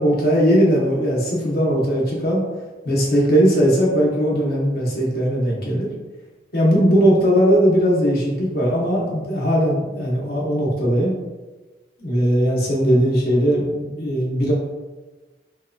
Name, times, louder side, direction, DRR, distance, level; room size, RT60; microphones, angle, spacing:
voice 1, 0.0-2.4 2.8-5.9 6.5-11.1 12.0-14.5, equal, 55° left, -3 dB, 0.8 m, -19 dB
3.1 x 2.8 x 2.5 m, 1.2 s
head